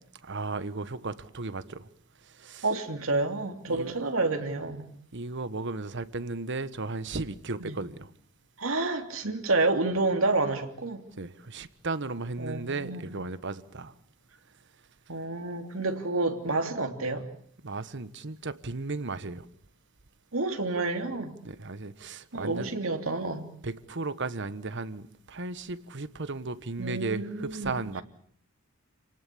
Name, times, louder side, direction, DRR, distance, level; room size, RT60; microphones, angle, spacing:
voice 1, 0.2-1.9 2.2-2.6 3.7-3.9 5.1-8.1 11.1-13.9 17.6-19.5 21.4-22.7 23.6-28.0, right 3 dB, 60° right, 1.3 m, -35 dB
voice 2, 2.6-4.9 7.6-7.8 8.6-11.0 12.4-13.1 15.1-17.3 20.3-21.3 22.3-23.5 26.8-27.8, right 3 dB, 80° right, 3.1 m, -29 dB
28.5 x 18.5 x 8.6 m
head